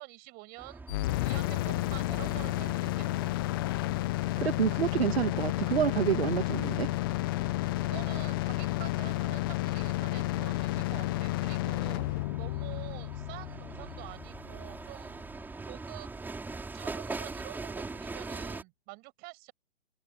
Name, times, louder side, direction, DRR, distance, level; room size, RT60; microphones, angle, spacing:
voice 1, 0.0-3.3 7.8-12.0 12.4-15.2 15.7-16.1 16.7-19.5, right 26 dB, 25° right, 7.2 m, -47 dB
sound 1, 0.6-18.6, right 3 dB, 5° right, 6.0 m, -44 dB
sound 2, 0.9-14.8, left 19 dB, 20° left, 0.6 m, -31 dB
voice 2, 4.4-6.9, right 9 dB, 60° right, 2.1 m, -28 dB
open air
hypercardioid pair, 140°, 35 cm